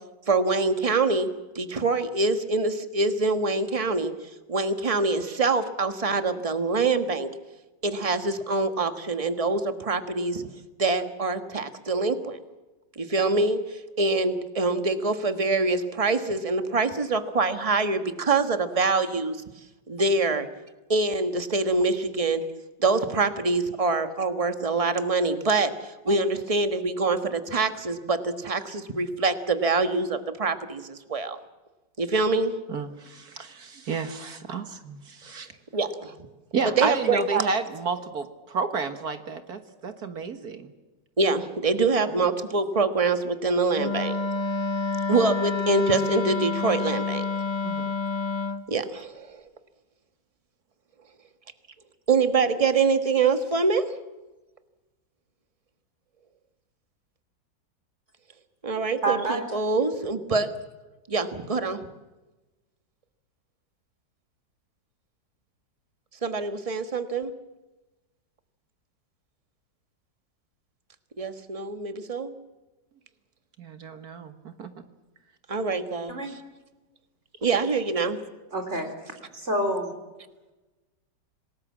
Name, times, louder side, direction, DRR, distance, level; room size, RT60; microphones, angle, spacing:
voice 1, 0.3-1.3 1.5-4.1 4.5-7.3 7.8-10.4 10.8-12.4 13.1-13.6 14.0-19.4 19.9-20.5 20.9-22.4 22.8-25.7 26.1-30.8 31.1-31.4 32.0-32.5 35.7-35.9 36.8-37.4 41.2-44.1 45.1-47.2 48.7-49.1 52.1-53.8 58.6-60.5 61.1-61.8 66.2-67.3 71.2-72.3 75.5-76.1 77.4-78.2, right 3 dB, 20° right, 8 dB, 1.4 m, -24 dB
voice 2, 32.7-35.5 36.5-40.7 42.2-42.3 47.6-47.9 73.6-74.7, right 5 dB, 60° right, 8 dB, 1.9 m, -31 dB
Wind instrument woodwind instrument, 43.7-48.6, left 4 dB, 25° left, 0.6 m, -28 dB
voice 3, 59.0-59.4 76.1-76.3 78.5-78.9 79.3-79.9, right 1 dB, 40° right, 5 dB, 4.2 m, -27 dB
27.0 x 19.0 x 7.4 m, 1.1 s
omnidirectional pair, 1.9 m